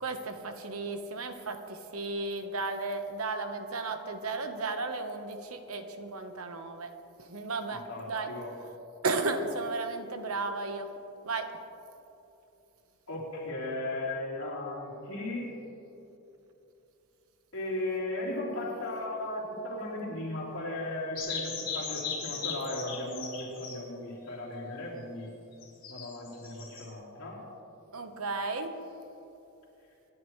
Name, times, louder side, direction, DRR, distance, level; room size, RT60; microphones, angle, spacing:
voice 1, 0.0-6.9 7.3-8.3 9.0-10.9 11.2-11.5 27.9-28.7, right 3 dB, 75° right, 6 dB, 1.2 m, -34 dB
voice 2, 7.7-8.5 13.1-15.5 17.5-25.3 25.9-27.4, left 1 dB, 70° left, -5 dB, 4.0 m, -36 dB
sound 1, 21.1-23.8 25.6-26.8, left 6 dB, 40° left, 3.7 m, -37 dB
26.5 x 11.0 x 3.2 m, 2.9 s
head